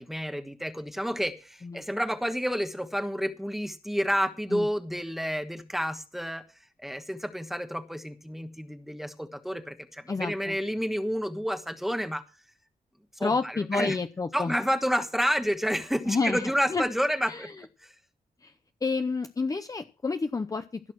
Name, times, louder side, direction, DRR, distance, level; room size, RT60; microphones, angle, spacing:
voice 1, 0.0-6.4 6.8-12.2 13.2-14.0 14.3-17.5 17.8-17.9, equal, ahead, 9 dB, 1.2 m, -30 dB
voice 2, 10.1-10.5 13.2-14.5 16.1-16.4 16.7-16.8 17.3-17.5 18.4-18.5 18.8-20.9, left 4 dB, 20° left, 8 dB, 0.7 m, -29 dB
15.5 x 6.5 x 6.3 m, 0.32 s
wide cardioid pair, 155°, 16 cm